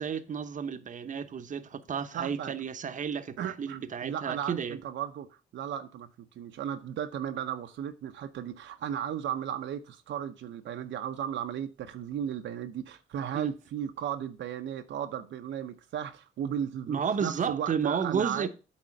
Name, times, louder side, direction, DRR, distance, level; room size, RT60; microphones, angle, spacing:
voice 1, 0.0-4.8 13.3-13.5 16.9-18.5, right 7 dB, 40° right, 0.8 m, -32 dB
voice 2, 2.1-2.5 3.4-18.5, right 9 dB, 70° right, 0.7 m, -35 dB
8.4 x 3.8 x 6.4 m
cardioid pair, 90°, 20 cm